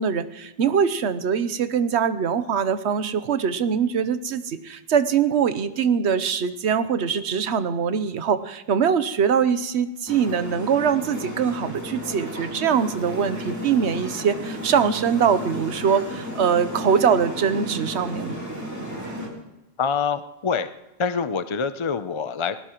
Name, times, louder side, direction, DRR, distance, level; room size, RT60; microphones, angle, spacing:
voice 1, 0.0-18.4, right 7 dB, 75° right, 12 dB, 1.1 m, -23 dB
sound 1, 10.1-19.3, equal, 15° right, 3.1 m, -33 dB
voice 2, 19.8-20.7 21.0-22.6, left 6 dB, 40° left, 11 dB, 0.5 m, -25 dB
20.5 x 17.5 x 3.0 m, 0.95 s
omnidirectional pair, 1.1 m